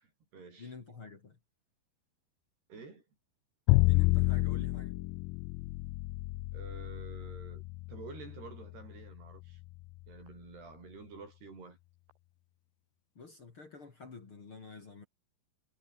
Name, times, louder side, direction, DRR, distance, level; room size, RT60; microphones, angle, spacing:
voice 1, 0.0-1.0 2.7-3.1 6.5-7.6 7.9-9.6 10.1-11.8, right 4 dB, 70° right, 9.5 m, -49 dB
voice 2, 0.6-1.4 3.7-5.0 13.1-15.1, left 4 dB, 35° left, 3.2 m, -49 dB
Bowed string instrument, 3.7-9.8, left 21 dB, 90° left, 2.1 m, -30 dB
omnidirectional pair, 4.8 m